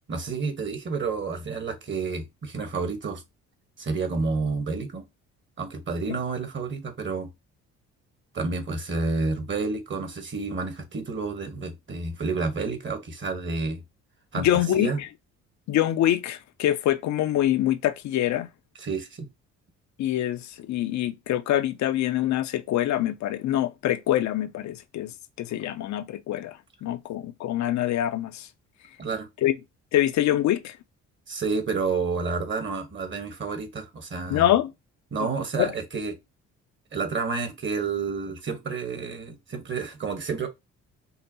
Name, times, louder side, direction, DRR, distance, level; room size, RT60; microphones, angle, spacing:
voice 1, 0.1-3.2 3.8-5.0 5.6-7.3 8.3-13.8 14.3-14.5 14.7-15.0 18.8-19.3 29.0-29.3 31.3-34.6 35.1-36.1 36.9-40.5, right 4 dB, 40° right, 1.2 m, -30 dB
voice 2, 14.3-14.9 15.7-18.5 20.0-25.1 25.4-28.5 29.4-29.6 29.9-30.8 34.3-34.7 35.6-35.7, left 12 dB, 65° left, 0.5 m, -25 dB
5.4 x 2.0 x 2.7 m
cardioid pair, 90°, 30 cm